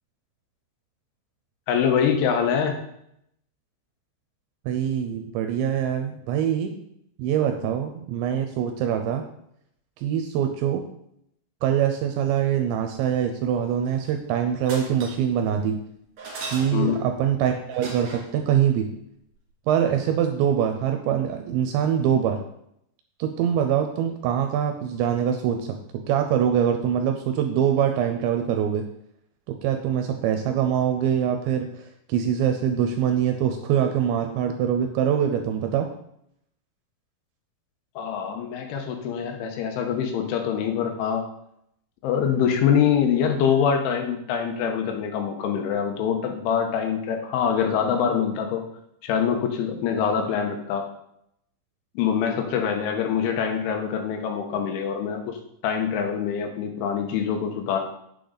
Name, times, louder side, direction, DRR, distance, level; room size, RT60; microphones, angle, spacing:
voice 1, 1.7-2.7 16.7-17.0 38.0-41.2 42.0-48.7 49.0-50.8 52.0-55.4 55.6-57.8, left 7 dB, 80° left, 4 dB, 3.4 m, -24 dB
voice 2, 4.7-6.7 7.2-9.2 10.0-10.8 11.6-15.8 16.5-18.9 19.7-22.4 23.2-28.9 29.5-35.9, right 9 dB, 80° right, 6 dB, 2.7 m, -24 dB
sound 1, 13.8-14.3 14.6-15.3 16.2-17.0 17.7-18.4 20.5-20.6 20.8-20.9, right 3 dB, 45° right, 2.4 m, -38 dB
8.7 x 6.8 x 3.9 m, 0.74 s
omnidirectional pair, 5.6 m